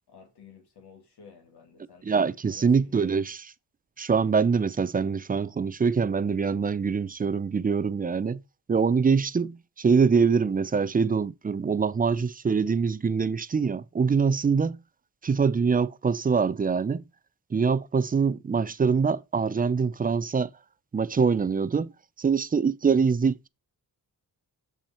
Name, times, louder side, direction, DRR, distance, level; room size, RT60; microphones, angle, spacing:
voice 1, 0.1-2.0 2.5-3.2, left 6 dB, 85° left, 2.6 m, -52 dB
voice 2, 2.0-3.4 4.0-8.4 8.7-14.8 15.2-17.0 17.5-20.5 20.9-21.9 22.2-23.5, right 5 dB, 25° right, 0.4 m, -24 dB
7.1 x 5.8 x 4.3 m
wide cardioid pair, 105°, 39 cm